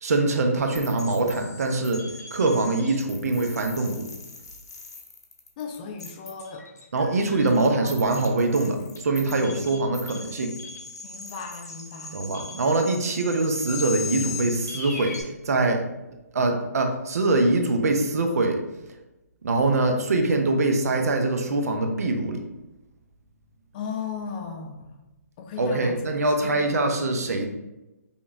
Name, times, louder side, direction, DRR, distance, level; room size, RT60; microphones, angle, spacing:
voice 1, 0.0-2.0 2.3-4.1 6.9-10.5 12.1-15.8 16.3-18.6 19.4-22.4 25.6-27.5, right 2 dB, 70° right, 4 dB, 0.6 m, -23 dB
sound 1, 0.7-15.2, left 4 dB, 85° left, 0.8 m, -39 dB
voice 2, 5.6-6.7 7.5-7.9 9.1-9.6 11.0-12.3 13.5-13.6 23.7-25.0 25.4-26.0 26.4-26.5, left 6 dB, 30° left, 4 dB, 0.4 m, -37 dB
5.2 x 2.4 x 2.5 m, 0.99 s
hypercardioid pair, 145°, 9 cm